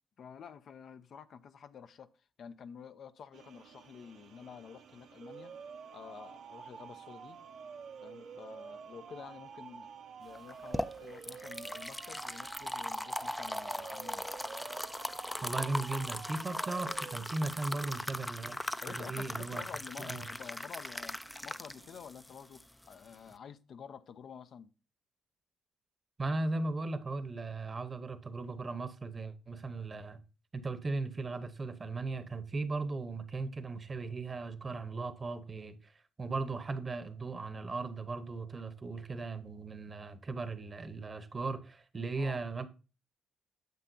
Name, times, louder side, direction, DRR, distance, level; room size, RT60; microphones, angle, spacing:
voice 1, 0.2-2.1 2.4-5.5 5.9-7.4 8.0-9.9 10.2-14.2 18.8-24.7 42.2-42.4, left 7 dB, 60° left, 0.6 m, -50 dB
sound 1, 3.3-22.1, right 7 dB, 80° right, 1.1 m, -61 dB
sound 2, 5.2-17.2, right 6 dB, 55° right, 0.7 m, -49 dB
sound 3, 10.4-23.3, left 1 dB, 5° left, 0.4 m, -39 dB
voice 2, 15.4-18.6 18.9-19.6 20.0-20.2 26.2-30.2 30.5-42.6, right 3 dB, 30° right, 0.9 m, -37 dB
9.2 x 7.3 x 2.7 m
cardioid pair, 90°, 0 cm